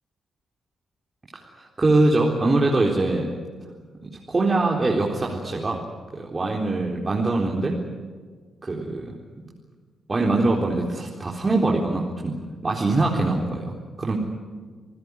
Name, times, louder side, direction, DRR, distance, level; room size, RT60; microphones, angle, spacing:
voice 1, 1.6-3.3 4.0-5.8 6.1-7.8 8.6-9.1 10.1-14.2, right 2 dB, 35° right, -2 dB, 3.9 m, -23 dB
28.0 x 16.0 x 9.8 m, 1.5 s
hypercardioid pair, 45°, 0 cm